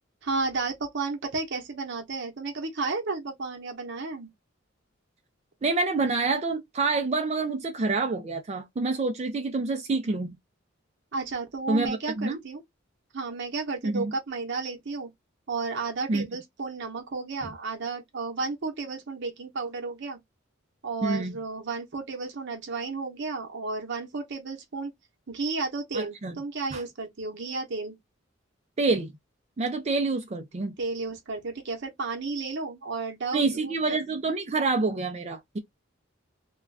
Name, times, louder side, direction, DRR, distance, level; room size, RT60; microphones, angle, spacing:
voice 1, 0.2-4.3 11.1-12.6 13.1-15.1 15.5-20.2 20.8-24.9 25.3-28.0 30.8-34.0, right 3 dB, 60° right, 0.8 m, -33 dB
voice 2, 5.6-10.3 11.7-12.4 13.8-14.1 16.1-16.3 21.0-21.4 25.9-26.3 26.7-26.8 28.8-29.1 29.6-30.7 33.3-35.6, right 3 dB, 35° right, 0.4 m, -27 dB
2.4 x 2.2 x 3.2 m
head